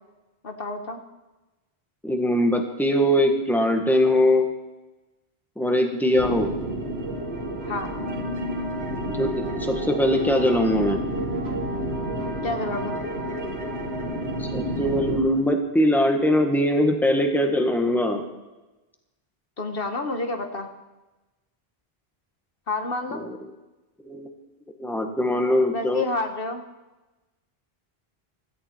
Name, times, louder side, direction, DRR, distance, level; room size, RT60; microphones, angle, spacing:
voice 1, 0.4-1.0 7.7-7.9 12.4-13.0 19.6-20.7 22.7-23.2 25.7-26.6, left 2 dB, 65° left, 6 dB, 1.5 m, -29 dB
voice 2, 2.0-4.5 5.6-6.5 9.2-11.0 14.4-18.2 23.1-23.4 24.0-24.3 24.8-26.0, left 1 dB, ahead, 4 dB, 1.5 m, -21 dB
sound 1, 6.1-15.2, right 1 dB, 80° right, 1.8 m, -30 dB
16.5 x 14.0 x 4.5 m, 1.1 s
omnidirectional pair, 1.0 m